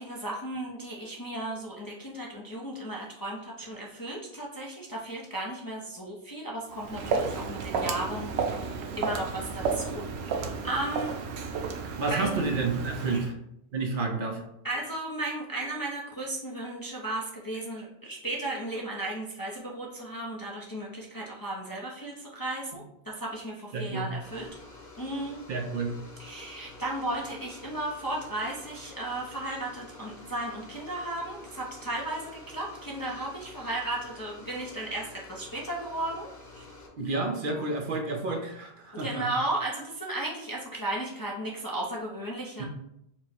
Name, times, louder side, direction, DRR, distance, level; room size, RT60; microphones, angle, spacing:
voice 1, 0.0-11.1 12.1-12.4 13.1-13.3 14.6-24.5 25.0-25.4 26.2-36.3 36.5-36.7 38.9-42.6, right 1 dB, 30° left, -4 dB, 0.4 m, -35 dB
Walk footsteps, 6.7-13.3, right 5 dB, 90° right, 0.8 m, -32 dB
voice 2, 12.0-13.3 13.7-14.4 23.7-24.1 25.5-25.9 37.0-39.3 42.6-42.7, right 3 dB, 60° right, 3 dB, 0.7 m, -30 dB
sound 1, 24.2-36.9, left 3 dB, 75° left, 1.9 m, -49 dB
4.5 x 2.1 x 4.2 m, 0.79 s
omnidirectional pair, 1.1 m